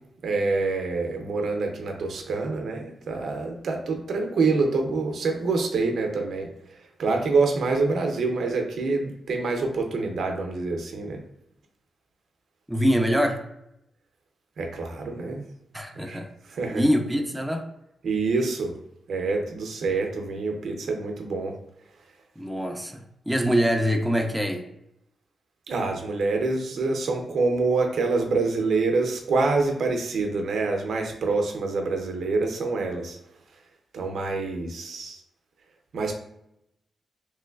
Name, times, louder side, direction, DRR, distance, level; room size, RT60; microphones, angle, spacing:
voice 1, 0.2-6.5 7.0-11.2 14.6-15.4 16.0-16.2 16.5-16.8 18.0-18.7 19.1-21.5 25.7-33.2 33.9-35.2 35.9-36.2, right 3 dB, 75° right, 3 dB, 0.5 m, -26 dB
voice 2, 12.7-13.4 15.7-16.3 16.7-17.7 22.4-23.0 23.3-24.6, equal, 5° right, 4 dB, 0.4 m, -24 dB
3.0 x 3.0 x 2.3 m, 0.80 s
cardioid pair, 105°, 0 cm